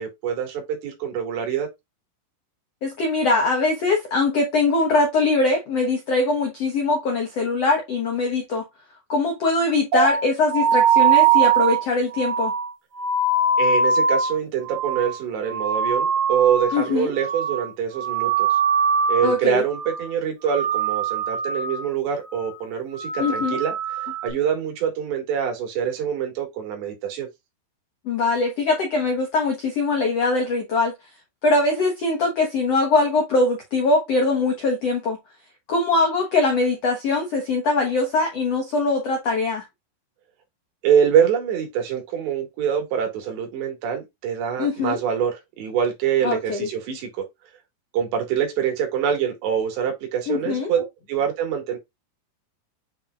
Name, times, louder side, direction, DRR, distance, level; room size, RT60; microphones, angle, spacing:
voice 1, 0.0-1.7 13.6-18.5 19.1-27.3 40.8-47.2 47.9-51.8, right 8 dB, 85° right, 4.4 m, -25 dB
voice 2, 2.8-8.6 9.1-12.5 16.7-17.1 19.2-19.6 23.2-23.6 28.0-30.9 31.4-35.2 35.7-39.6 44.6-45.0 46.2-46.7 50.3-50.7, left 3 dB, 75° left, 1.4 m, -22 dB
sound 1, 9.9-16.9 17.2-17.7 17.9-19.4 19.7-20.1 20.4-21.9 22.2-22.6 22.9-24.3, right 5 dB, 60° right, 2.2 m, -22 dB
7.9 x 4.8 x 2.4 m
omnidirectional pair, 4.8 m